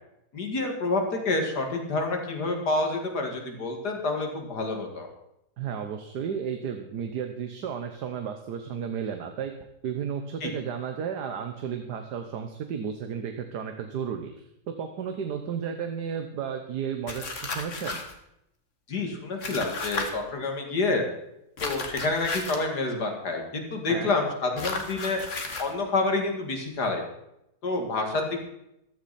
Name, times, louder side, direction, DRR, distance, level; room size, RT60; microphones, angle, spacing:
voice 1, 0.3-5.1 10.4-10.5 18.9-21.1 21.6-25.2 25.6-27.0 27.6-28.5, left 3 dB, 85° left, 3 dB, 2.8 m, -28 dB
voice 2, 5.6-9.5 9.8-14.4 14.8-18.0 23.9-24.1, right 7 dB, 85° right, 6 dB, 1.6 m, -33 dB
sound 1, 17.1-18.1 19.4-20.1 21.6-22.7 24.6-25.7, left 3 dB, 50° left, 1.8 m, -33 dB
15.0 x 13.0 x 4.3 m, 0.83 s
omnidirectional pair, 1.7 m